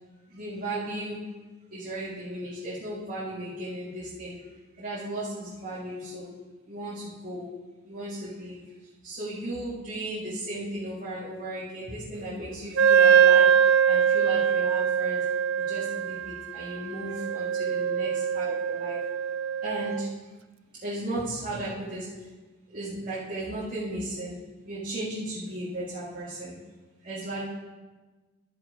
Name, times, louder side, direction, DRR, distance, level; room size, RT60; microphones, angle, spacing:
voice 1, 0.3-1.3 1.7-4.4 4.7-6.3 6.7-7.5 7.8-8.6 9.0-15.2 15.6-19.0 19.6-20.1 20.8-22.3 22.7-24.4 24.6-26.5 27.0-27.4, right 1 dB, 40° right, -9 dB, 1.9 m, -35 dB
Wind instrument woodwind instrument, 12.8-20.1, right 8 dB, 55° right, 0.3 m, -23 dB
13.5 x 5.3 x 5.0 m, 1.3 s
head